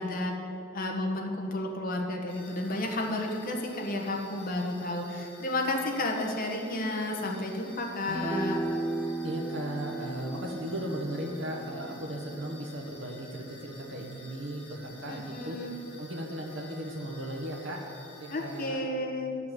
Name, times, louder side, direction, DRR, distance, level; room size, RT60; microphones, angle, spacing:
voice 1, 0.0-8.6 15.0-15.7 18.3-19.3, left 1 dB, 45° left, 1 dB, 1.4 m, -32 dB
sound 1, 2.3-18.7, left 2 dB, 30° left, 1.4 m, -51 dB
sound 2, 8.1-14.6, right 2 dB, 10° left, 0.9 m, -37 dB
voice 2, 9.2-15.6 16.0-17.9 18.2-18.8, right 1 dB, 70° right, -1 dB, 1.2 m, -36 dB
11.0 x 5.9 x 7.6 m, 2.7 s
head